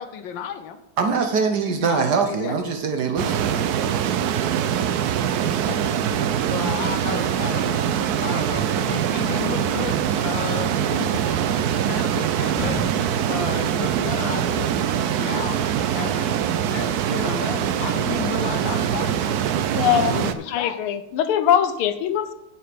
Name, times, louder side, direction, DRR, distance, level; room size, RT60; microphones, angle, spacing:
voice 1, 0.0-0.8 1.9-2.6 5.7-5.8 6.2-12.9 13.3-14.7 15.1-15.6 15.9-16.3 16.7-19.4 20.1-20.8, left 8 dB, 70° left, 9 dB, 1.3 m, -33 dB
voice 2, 1.0-3.7, right 5 dB, 60° right, 5 dB, 1.3 m, -23 dB
sound 1, 3.2-20.3, right 9 dB, 80° right, 0.8 m, -23 dB
sound 2, 8.5-9.1 12.6-13.4, right 1 dB, 5° left, 3.9 m, -32 dB
voice 3, 19.7-20.2 20.5-22.3, left 10 dB, 85° left, 11 dB, 1.6 m, -21 dB
8.2 x 7.8 x 5.1 m, 0.91 s
omnidirectional pair, 2.3 m